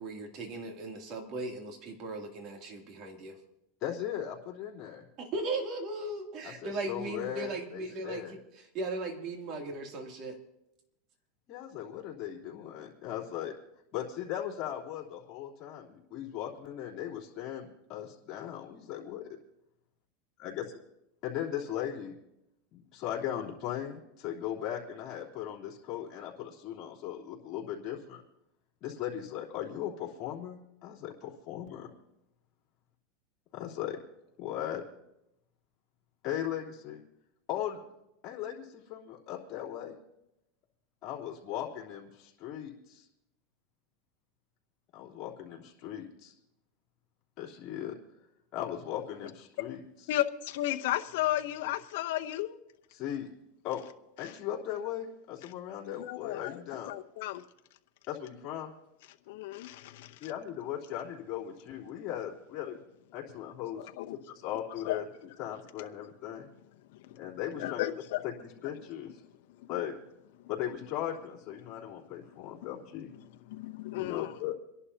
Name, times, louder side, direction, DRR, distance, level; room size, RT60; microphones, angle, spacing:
voice 1, 0.0-3.4 5.2-10.4, right 2 dB, 45° right, 2.8 m, -37 dB
voice 2, 3.8-5.0 6.4-8.3 11.5-13.5 13.9-19.3 20.4-20.8 21.2-22.1 22.7-28.2 28.8-31.9 33.5-34.0 34.4-34.8 36.2-37.0 37.5-37.8 38.2-40.0 41.0-43.1 44.9-46.3 47.4-47.9 48.5-49.8 52.9-53.3 53.6-53.8 54.2-56.9 58.1-58.7 60.2-62.8 63.1-63.9 64.3-65.0 65.4-66.5 67.1-67.8 68.4-69.2 69.7-69.9 70.5-73.1 73.9-74.5, left 11 dB, 45° left, 3.4 m, -38 dB
voice 3, 50.1-52.6 54.2-54.3 55.9-57.4 59.3-60.3 63.8-64.2 64.8-65.0 65.8-65.9 66.9-67.3 67.6-68.2 69.5-69.7 73.5-74.3, left 14 dB, 70° left, 0.8 m, -34 dB
27.5 x 11.0 x 2.9 m
supercardioid pair, 130°, 0 cm